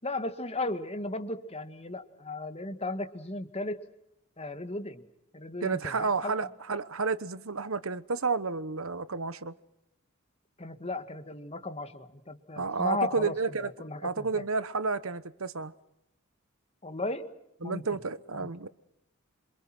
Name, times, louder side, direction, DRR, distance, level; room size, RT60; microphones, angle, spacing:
voice 1, 0.0-3.9 4.4-5.0 5.3-6.3 10.6-14.4 16.8-17.3 17.6-17.8, left 2 dB, 30° left, 1.9 m, -35 dB
voice 2, 5.6-9.5 12.6-13.7 14.0-15.7 17.6-18.7, right 4 dB, 70° right, 1.2 m, -31 dB
27.5 x 26.5 x 6.2 m
head